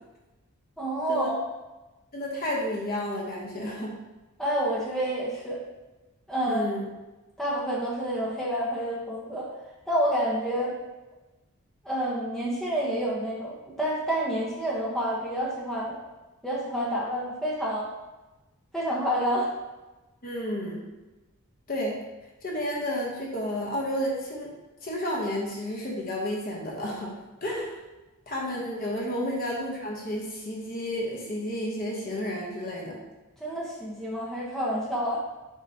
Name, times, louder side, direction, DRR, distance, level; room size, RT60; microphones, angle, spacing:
voice 1, 0.8-1.4 4.4-5.6 6.3-6.7 7.4-9.5 9.9-10.7 11.8-16.0 16.4-17.9 18.7-19.5 29.1-29.2 33.4-35.2, equal, ahead, -6 dB, 1.1 m, -28 dB
voice 2, 2.1-4.0 6.5-6.9 20.2-20.9 21.7-22.0 22.4-24.5 24.8-27.1 27.4-27.7 28.3-33.0, equal, 40° left, -2 dB, 1.0 m, -31 dB
7.1 x 4.9 x 2.9 m, 1.1 s
head